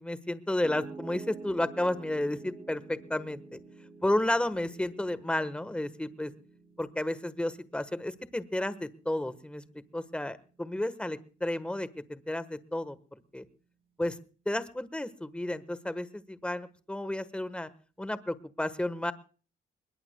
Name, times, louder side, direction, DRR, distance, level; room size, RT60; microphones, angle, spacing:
voice 1, 0.0-3.6 4.0-6.3 6.8-9.6 9.9-13.0 13.3-13.4 14.0-14.2 14.4-17.7 18.0-19.1, left 1 dB, 5° left, 14 dB, 1.3 m, -32 dB
Piano, 0.6-12.8, right 3 dB, 30° right, 2.9 m, -50 dB
21.5 x 21.0 x 2.2 m, 0.38 s
cardioid pair, 90°, 20 cm